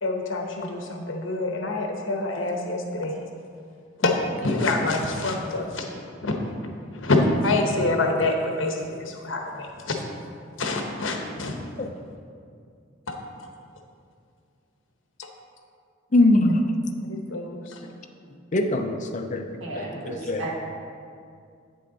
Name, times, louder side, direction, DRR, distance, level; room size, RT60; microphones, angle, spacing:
voice 1, 0.0-3.2 4.0-7.2 7.4-10.0 10.6-11.5 13.1-13.2 17.1-17.8, left 2 dB, 75° left, 2 dB, 1.1 m, -27 dB
voice 2, 16.1-16.6 18.5-19.5 19.7-20.5, left 2 dB, 40° left, 5 dB, 0.6 m, -22 dB
voice 3, 19.6-20.5, right 3 dB, 85° right, -4 dB, 1.9 m, -34 dB
8.6 x 6.5 x 4.0 m, 2.3 s
head